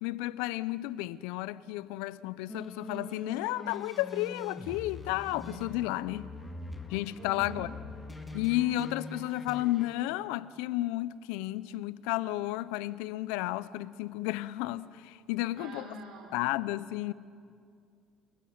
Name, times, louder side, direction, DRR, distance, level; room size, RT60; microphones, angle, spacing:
voice 1, 0.0-6.3 6.9-7.7 8.3-15.8 16.3-17.1, left 16 dB, 85° left, 0.6 m, -32 dB
sound 1, 2.5-9.9, left 2 dB, 15° left, 2.7 m, -43 dB
voice 2, 7.2-7.6 15.6-16.3, right 1 dB, 60° right, 4.4 m, -45 dB
28.5 x 14.5 x 9.4 m
supercardioid pair, 90°, 0 cm